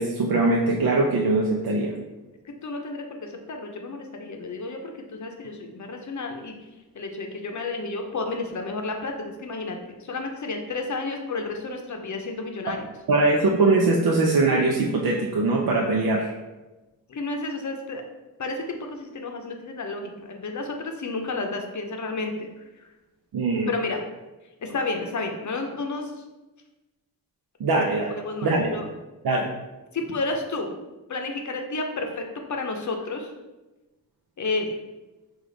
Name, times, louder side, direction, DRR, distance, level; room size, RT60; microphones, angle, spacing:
voice 1, 0.0-1.9 13.1-16.3 23.3-23.7 27.6-28.1 28.4-28.8 29.2-29.5, right 2 dB, 90° right, -1 dB, 0.5 m, -22 dB
voice 2, 2.6-6.6 6.9-12.8 17.1-18.0 18.4-22.7 23.7-24.0 24.6-26.2 28.2-28.8 29.9-30.7 31.1-32.2 32.5-33.3 34.4-34.8, left 3 dB, 55° left, 3 dB, 0.6 m, -31 dB
4.9 x 2.4 x 3.9 m, 1.1 s
wide cardioid pair, 140°, 35 cm